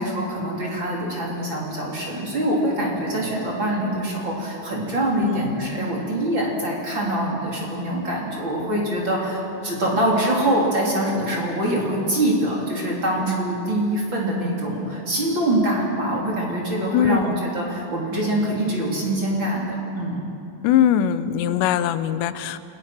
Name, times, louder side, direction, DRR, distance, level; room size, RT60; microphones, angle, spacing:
voice 1, 0.0-20.2, right 1 dB, 30° right, -3 dB, 3.9 m, -24 dB
voice 2, 16.9-17.4 20.6-22.6, left 9 dB, 85° left, 13 dB, 3.0 m, -21 dB
29.0 x 21.0 x 6.1 m, 2.8 s
omnidirectional pair, 4.9 m